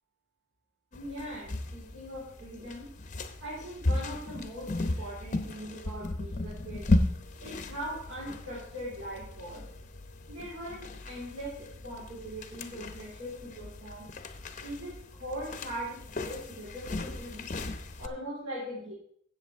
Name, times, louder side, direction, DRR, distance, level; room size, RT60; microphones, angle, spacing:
sound 1, 0.9-18.1, left 2 dB, 40° left, 0.7 m, -35 dB
voice 1, 0.9-2.9 3.4-6.9 7.4-9.7 10.3-14.1 14.6-17.5 18.0-18.9, equal, 65° right, -8 dB, 4.1 m, -40 dB
13.5 x 8.1 x 3.5 m, 0.64 s
head